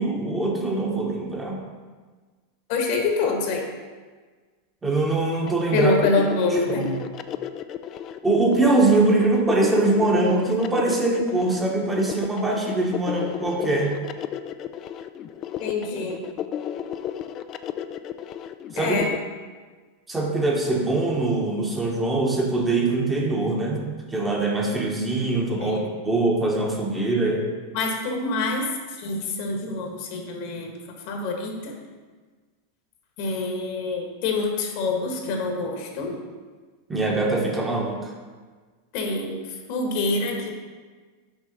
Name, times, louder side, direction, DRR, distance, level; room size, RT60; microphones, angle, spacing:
voice 1, 0.0-1.6 4.8-6.0 6.7-7.0 8.2-14.0 18.7-19.0 20.1-23.8 24.1-25.8 26.0-27.4 36.9-38.1, right 2 dB, 15° right, -1 dB, 1.2 m, -23 dB
voice 2, 2.7-3.7 5.7-6.9 15.6-16.2 18.8-19.1 25.6-25.8 27.7-30.7 31.1-31.7 33.2-36.2 38.9-39.3 39.7-40.5, left 3 dB, 60° left, 2 dB, 1.2 m, -26 dB
sound 1, 5.5-19.2, left 10 dB, 40° left, 0.3 m, -33 dB
6.2 x 4.7 x 4.0 m, 1.4 s
hypercardioid pair, 105°, 0 cm